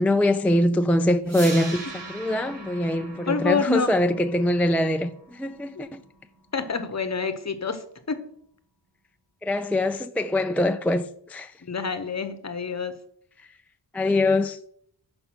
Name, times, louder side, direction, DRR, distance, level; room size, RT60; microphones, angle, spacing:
voice 1, 0.0-6.0 9.4-11.5 13.9-14.6, left 1 dB, 5° left, 0.3 m, -23 dB
sound 1, 1.3-7.3, right 2 dB, 70° right, 3.7 m, -41 dB
voice 2, 3.3-3.9 5.8-5.9 6.5-8.3 11.6-12.9, left 5 dB, 35° left, 0.9 m, -27 dB
5.6 x 5.3 x 6.2 m
cardioid pair, 65°, 44 cm